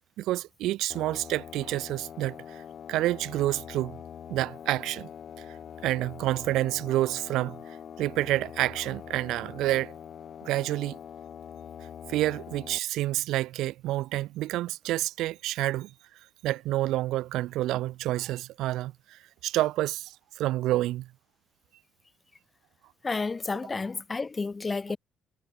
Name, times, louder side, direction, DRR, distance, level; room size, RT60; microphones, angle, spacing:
voice 1, 0.2-2.6 2.9-4.0 4.3-5.1 5.4-5.5 5.8-9.9 10.4-11.0 12.1-15.9 16.4-21.1, right 15 dB, 90° right, 0.5 m, -29 dB
sound 1, 0.9-12.8, left 8 dB, 50° left, 1.2 m, -44 dB
voice 2, 23.0-25.0, left 4 dB, 20° left, 1.3 m, -31 dB
cardioid pair, 135°, 0 cm